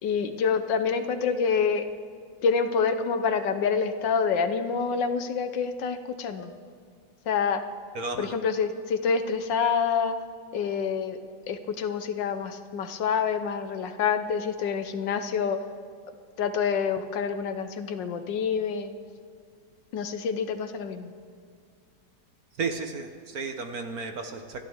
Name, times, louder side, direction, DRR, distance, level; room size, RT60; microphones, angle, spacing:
voice 1, 0.0-1.9 2.4-6.6 7.3-7.6 8.2-10.1 10.5-11.2 11.5-15.6 16.4-18.9 19.9-21.1, left 6 dB, 70° left, 9 dB, 1.5 m, -27 dB
voice 2, 7.9-8.4 22.6-24.6, right 4 dB, 55° right, 5 dB, 1.4 m, -33 dB
28.0 x 12.0 x 3.6 m, 2.3 s
omnidirectional pair, 2.1 m